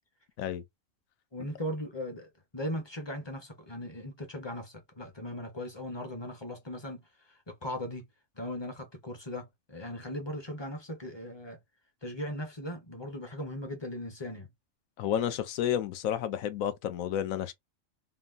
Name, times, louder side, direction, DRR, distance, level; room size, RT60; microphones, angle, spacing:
voice 1, 1.3-8.1 8.4-11.6 12.0-14.5, left 1 dB, 30° left, 0.6 m, -38 dB
voice 2, 15.0-17.5, left 10 dB, 90° left, 1.0 m, -31 dB
3.7 x 2.0 x 2.3 m
omnidirectional pair, 1.4 m